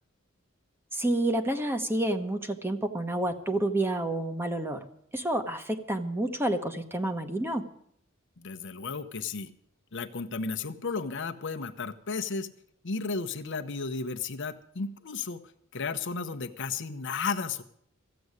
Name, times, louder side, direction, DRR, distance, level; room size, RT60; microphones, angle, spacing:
voice 1, 0.9-4.8 5.1-7.6, right 1 dB, 10° right, 7 dB, 1.1 m, -29 dB
voice 2, 8.4-9.5 9.9-12.5 12.8-15.4 15.7-17.6, left 4 dB, 60° left, 7 dB, 0.9 m, -33 dB
14.5 x 7.8 x 9.6 m, 0.69 s
head